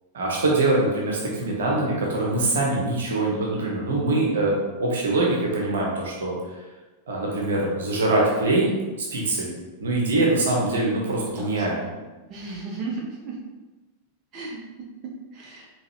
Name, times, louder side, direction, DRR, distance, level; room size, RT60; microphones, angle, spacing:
voice 1, 0.1-6.4 7.1-8.7 9.0-9.5 9.8-11.8, right 2 dB, 65° right, -3 dB, 1.0 m, -23 dB
voice 2, 11.2-11.9 12.3-13.4 14.3-14.6 15.3-15.7, right 3 dB, 30° right, -3 dB, 1.0 m, -35 dB
5.1 x 3.2 x 3.1 m, 1.2 s
figure-of-eight pair, 90°, 0 cm